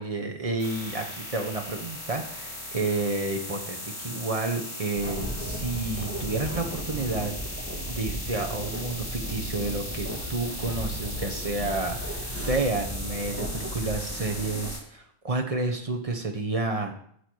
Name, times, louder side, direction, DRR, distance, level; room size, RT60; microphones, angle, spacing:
voice 1, 0.0-16.9, right 3 dB, 30° right, 3 dB, 0.9 m, -30 dB
sound 1, 0.6-14.8, left 1 dB, 40° left, 4.1 m, -38 dB
sound 2, 5.0-14.7, right 1 dB, 10° right, 1.4 m, -36 dB
8.7 x 6.8 x 4.7 m, 0.66 s
omnidirectional pair, 1.3 m